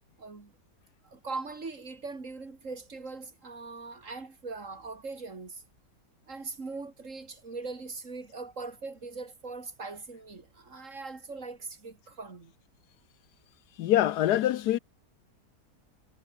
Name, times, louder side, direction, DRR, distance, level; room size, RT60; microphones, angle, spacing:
voice 1, 0.2-0.5 1.0-5.6 6.3-12.5, right 3 dB, 50° right, 3.1 m, -41 dB
voice 2, 13.8-14.8, left 12 dB, 75° left, 1.2 m, -24 dB
omnidirectional pair, 1.8 m